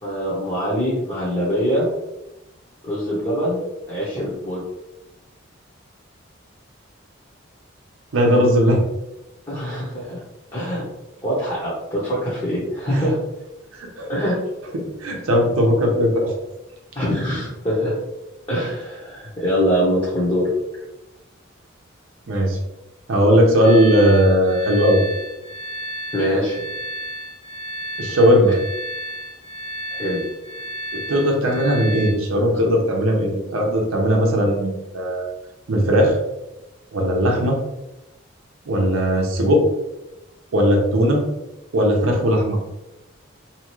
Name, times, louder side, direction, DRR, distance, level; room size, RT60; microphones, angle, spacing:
voice 1, 0.0-1.9 2.8-3.6 3.9-4.6 9.5-10.2 10.5-10.8 11.2-13.2 14.1-14.4 16.9-17.9 18.5-20.5 26.1-26.7 29.9-30.2, equal, 25° left, -8 dB, 0.7 m, -23 dB
voice 2, 8.1-8.8 12.9-13.0 13.7-14.1 14.7-16.3 22.3-22.6 23.1-25.0 28.0-28.6 30.9-35.3 35.7-36.2 36.9-37.6 38.7-39.7 40.5-41.3 41.7-42.6, equal, 80° right, 1 dB, 0.6 m, -18 dB
sound 1, 23.6-32.1, right 1 dB, 70° left, 0.8 m, -33 dB
2.7 x 2.4 x 3.0 m, 0.95 s
head